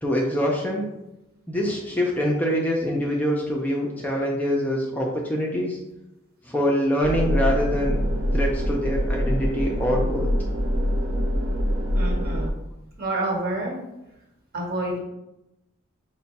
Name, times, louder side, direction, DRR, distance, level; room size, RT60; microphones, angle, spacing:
voice 1, 0.0-0.9 1.5-5.8 6.5-8.0 8.3-10.3, equal, 10° left, -2 dB, 0.4 m, -24 dB
sound 1, 7.0-12.5, equal, 80° right, 0.6 m, -24 dB
voice 2, 11.9-12.5 13.0-13.8 14.5-15.0, right 1 dB, 45° right, -1 dB, 1.2 m, -28 dB
5.5 x 2.1 x 4.0 m, 0.92 s
head